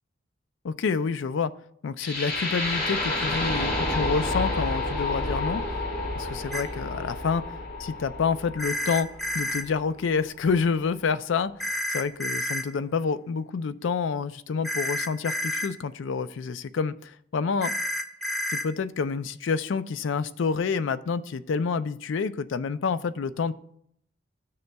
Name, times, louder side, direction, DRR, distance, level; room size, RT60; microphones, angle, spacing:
voice 1, 0.6-1.5 1.8-5.6 6.1-7.4 7.8-9.1 9.3-17.7 18.5-23.5, left 5 dB, 70° left, 14 dB, 0.4 m, -28 dB
sound 1, 2.0-10.0, left 2 dB, 50° left, 1.6 m, -30 dB
sound 2, 6.5-6.6 8.6-9.6 11.6-12.6 14.6-15.7 17.6-18.7, left 1 dB, ahead, 0.5 m, -29 dB
14.0 x 6.6 x 2.3 m, 0.71 s
head